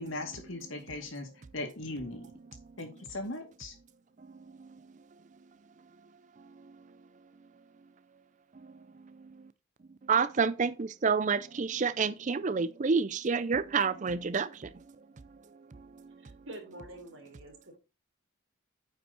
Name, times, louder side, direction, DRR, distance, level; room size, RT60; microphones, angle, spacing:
voice 1, 0.0-2.3 2.8-3.7, left 2 dB, 70° left, 2.3 m, -39 dB
voice 2, 10.1-14.5, right 5 dB, 35° right, 0.4 m, -28 dB
voice 3, 16.2-17.8, right 1 dB, 70° right, 3.6 m, -47 dB
9.1 x 5.5 x 4.2 m
head